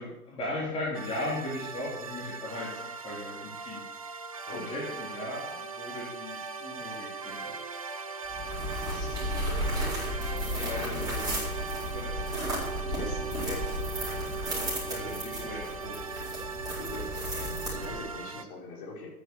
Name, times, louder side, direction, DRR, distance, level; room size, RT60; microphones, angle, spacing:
voice 1, 0.0-4.0 4.5-7.5 10.5-11.4 11.9-12.2 14.9-16.0 18.4-18.5, left 1 dB, 15° left, -6 dB, 3.5 m, -37 dB
sound 1, 0.9-18.4, right 4 dB, 25° right, 0.4 m, -40 dB
voice 2, 4.5-5.0 8.8-9.7 12.8-13.7 16.8-19.1, left 3 dB, 35° left, -2 dB, 5.7 m, -42 dB
sound 2, 8.3-18.2, right 1 dB, 10° right, 5.5 m, -33 dB
13.5 x 10.0 x 7.1 m, 0.92 s
hypercardioid pair, 140°, 45 cm